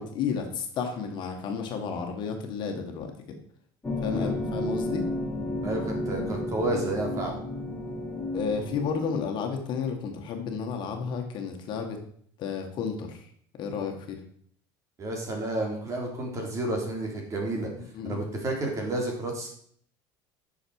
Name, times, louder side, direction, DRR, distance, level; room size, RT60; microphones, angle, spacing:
voice 1, 0.0-3.4 4.0-5.1 8.3-12.0 12.4-13.3 13.6-14.2 17.8-18.2, left 6 dB, 50° left, 4 dB, 1.8 m, -32 dB
sound 1, 3.8-9.1, left 1 dB, 15° left, 2.0 m, -32 dB
voice 2, 5.6-7.4 15.0-17.7 18.0-19.5, right 2 dB, 30° right, 1 dB, 3.4 m, -31 dB
10.0 x 6.6 x 4.8 m, 0.62 s
cardioid pair, 125°, 10 cm